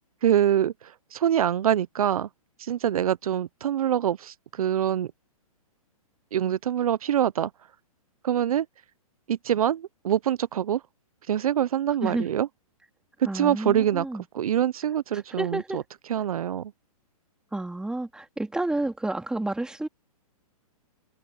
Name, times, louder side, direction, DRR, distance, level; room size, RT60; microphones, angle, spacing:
voice 1, 0.2-2.3 2.6-5.1 6.3-7.5 8.2-8.7 9.3-10.8 11.3-12.5 13.3-15.8 16.1-16.7, right 10 dB, 75° right, 0.7 m, -25 dB
voice 2, 13.2-14.2 15.4-15.8 17.5-19.9, right 2 dB, 5° right, 2.6 m, -30 dB
hypercardioid pair, 130°, 19 cm